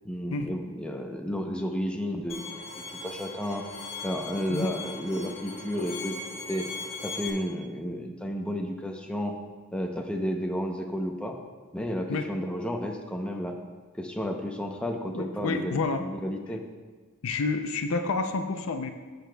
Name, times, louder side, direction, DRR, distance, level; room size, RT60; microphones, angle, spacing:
voice 1, 0.0-2.5 3.0-3.6 4.0-6.2 6.5-6.7 7.0-9.3 9.7-11.4 11.7-13.6 14.0-16.6, equal, 5° left, 2 dB, 0.7 m, -32 dB
Bowed string instrument, 2.3-7.3, left 3 dB, 30° left, 2.3 m, -39 dB
voice 2, 15.1-16.0 17.2-18.9, left 4 dB, 75° left, 6 dB, 0.5 m, -29 dB
13.5 x 6.7 x 2.3 m, 1.4 s
head